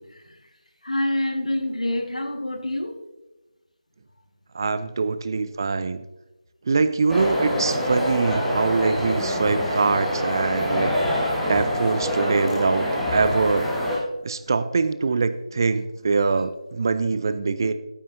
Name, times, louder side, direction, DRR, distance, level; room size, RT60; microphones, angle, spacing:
voice 1, 0.8-3.0 5.3-5.5 14.1-14.2, left 1 dB, 80° left, 5 dB, 1.7 m, -27 dB
voice 2, 4.5-6.0 6.7-13.7 14.2-17.7, right 4 dB, 35° right, 13 dB, 0.5 m, -24 dB
sound 1, 7.1-14.0, equal, ahead, 1.2 m, -25 dB
14.0 x 9.4 x 2.7 m, 1.0 s
figure-of-eight pair, 160°, 4 cm